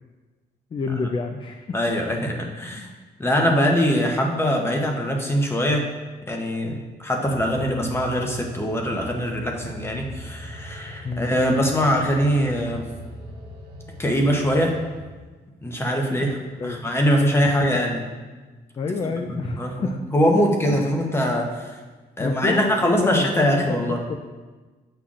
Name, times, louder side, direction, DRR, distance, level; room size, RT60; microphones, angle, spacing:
voice 1, 0.7-1.8 2.7-2.9 11.0-11.3 16.1-16.8 18.8-20.0 20.7-20.9 22.2-24.3, left 4 dB, 30° left, 5 dB, 0.3 m, -28 dB
voice 2, 1.7-2.9 3.2-5.9 6.3-12.9 14.0-14.8 15.6-18.0 19.3-21.8 22.2-24.0, equal, 15° left, 1 dB, 0.8 m, -22 dB
sound 1, 7.2-15.0, right 1 dB, 85° right, 1.3 m, -40 dB
8.4 x 5.6 x 2.5 m, 1.3 s
cardioid pair, 125°, 17 cm